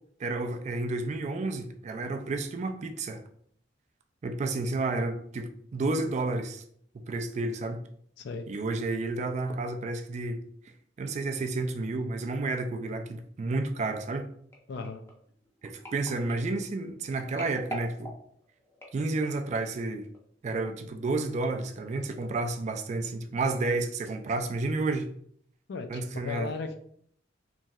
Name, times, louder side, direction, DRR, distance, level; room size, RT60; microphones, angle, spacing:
voice 1, 0.2-3.2 4.2-6.6 7.1-7.8 8.5-10.4 11.0-14.3 15.6-18.1 18.9-20.1 20.4-25.1 25.9-26.5, right 3 dB, 35° right, 6 dB, 0.3 m, -31 dB
sound 1, 14.5-19.5 20.1-20.4 20.6-20.7, equal, 15° left, 0.6 m, -45 dB
voice 2, 14.7-15.0 25.7-26.8, left 4 dB, 60° left, 7 dB, 0.4 m, -36 dB
3.0 x 2.6 x 2.3 m, 0.65 s
head